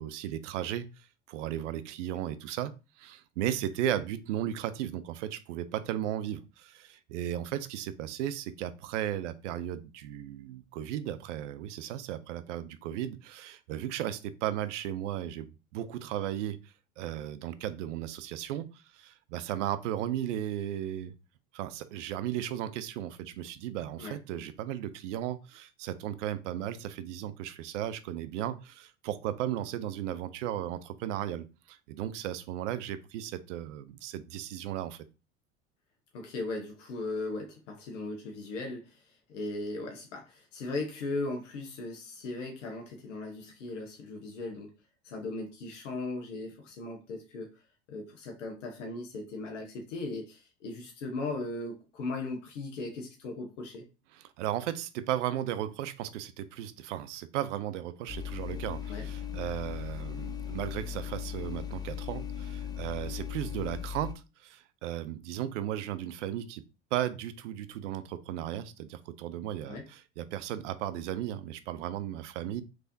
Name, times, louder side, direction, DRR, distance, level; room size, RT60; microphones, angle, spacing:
voice 1, 0.0-2.7 3.0-21.1 21.5-35.1 54.1-66.6 66.9-72.6, right 11 dB, 75° right, 0.6 m, -35 dB
voice 2, 36.1-39.0 39.3-44.7 45.0-47.6 47.9-53.9 58.9-59.1 69.7-69.9, left 2 dB, 80° left, 1.0 m, -38 dB
sound 1, 58.1-64.1, left 8 dB, 10° left, 0.3 m, -38 dB
3.4 x 3.3 x 2.6 m
hypercardioid pair, 85°, 36 cm